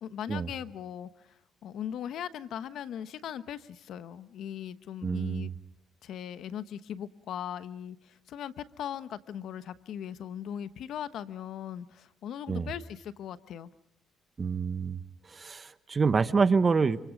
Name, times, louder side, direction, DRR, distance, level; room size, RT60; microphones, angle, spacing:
voice 1, 0.0-5.5 6.0-13.7, left 9 dB, 70° left, 13 dB, 1.0 m, -39 dB
voice 2, 5.0-5.5 12.5-12.7 14.4-15.0 15.3-17.0, right 5 dB, 35° right, 13 dB, 1.2 m, -27 dB
28.0 x 26.0 x 5.2 m, 0.78 s
supercardioid pair, 75°, 0 cm